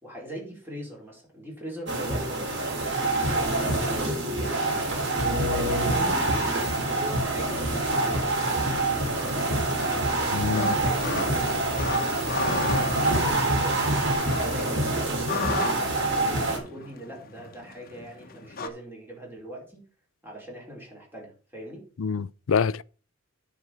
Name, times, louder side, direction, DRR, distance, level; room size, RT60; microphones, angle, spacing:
voice 1, 0.0-2.5 3.3-4.8 5.2-8.3 10.5-13.7 14.4-15.7 16.1-19.8 20.2-21.9, right 1 dB, 10° right, 4.8 m, -40 dB
sound 1, 1.9-16.6, right 2 dB, 55° right, 3.5 m, -26 dB
sound 2, 3.5-14.1, left 1 dB, 30° right, 2.3 m, -36 dB
sound 3, 8.9-18.7, left 4 dB, 45° left, 1.1 m, -36 dB
voice 2, 10.3-10.8 22.0-22.8, left 6 dB, 70° left, 0.4 m, -26 dB
9.5 x 5.2 x 6.2 m
head